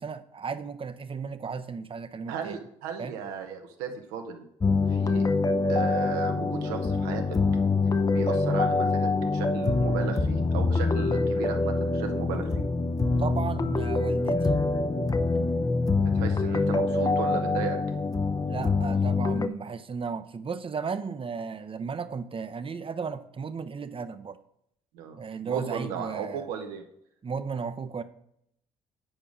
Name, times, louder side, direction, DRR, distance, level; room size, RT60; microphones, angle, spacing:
voice 1, 0.0-2.6 3.0-3.1 13.1-14.5 18.5-24.4 25.2-26.5 27.2-28.0, right 5 dB, 35° right, 0.7 m, -35 dB
voice 2, 2.3-4.4 4.9-5.3 5.7-7.2 8.1-12.6 16.0-17.8 24.9-25.2 25.4-26.8, right 7 dB, 85° right, 1.1 m, -35 dB
sound 1, 4.6-19.5, left 3 dB, 25° left, 0.6 m, -25 dB
9.0 x 4.9 x 5.1 m
hypercardioid pair, 55°, 15 cm